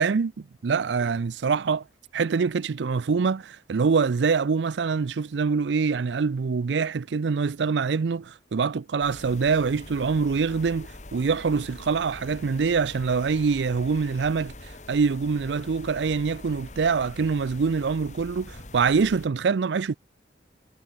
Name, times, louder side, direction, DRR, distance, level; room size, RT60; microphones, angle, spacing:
voice 1, 0.0-1.8 2.1-14.5 14.9-19.9, right 5 dB, 85° right, 0.5 m, -25 dB
sound 1, 9.0-19.3, left 2 dB, 40° left, 1.9 m, -44 dB
head